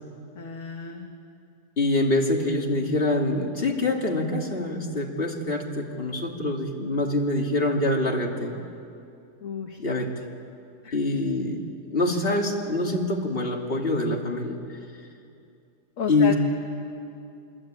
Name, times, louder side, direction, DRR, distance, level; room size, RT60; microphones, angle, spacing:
voice 1, 0.3-1.1 9.4-9.8 10.8-11.0 16.0-16.3, left 7 dB, 50° left, 3 dB, 1.7 m, -32 dB
voice 2, 1.8-8.5 9.8-10.1 10.9-11.6 11.9-14.6 16.1-16.3, left 2 dB, 35° left, 0 dB, 2.8 m, -25 dB
27.0 x 22.0 x 9.0 m, 2.5 s
omnidirectional pair, 1.8 m